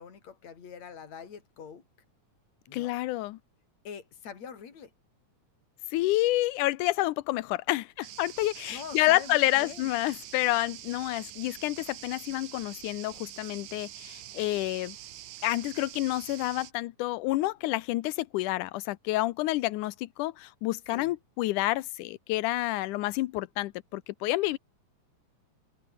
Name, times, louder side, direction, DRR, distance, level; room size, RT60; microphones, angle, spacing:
voice 1, 0.0-1.8 2.7-3.0 3.8-4.9 8.7-9.9 20.9-21.1, left 7 dB, 60° left, 4.8 m, -44 dB
voice 2, 2.7-3.4 5.9-15.0 15.4-24.6, left 17 dB, 85° left, 2.3 m, -29 dB
sound 1, 8.0-16.7, right 13 dB, 80° right, 2.7 m, -45 dB
omnidirectional pair, 3.5 m